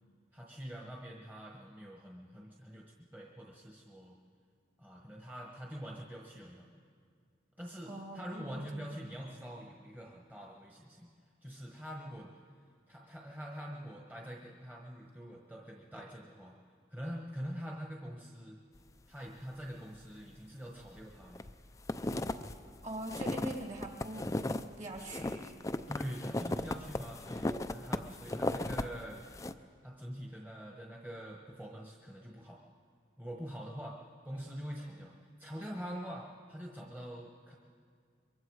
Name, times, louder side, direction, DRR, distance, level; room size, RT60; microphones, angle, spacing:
voice 1, 0.3-4.2 4.8-6.7 7.6-11.1 11.4-12.3 12.9-16.6 16.9-18.6 19.1-21.5 25.9-29.2 29.8-32.6 33.2-34.0 34.2-37.6, equal, 10° right, -2 dB, 1.2 m, -45 dB
voice 2, 7.9-9.0 22.8-25.6, right 1 dB, 35° right, 2 dB, 2.4 m, -43 dB
sound 1, 20.9-21.5 21.8-24.6 25.0-28.8 29.2-29.5, left 1 dB, 15° left, 0.4 m, -36 dB
23.0 x 23.0 x 4.8 m, 2.1 s
head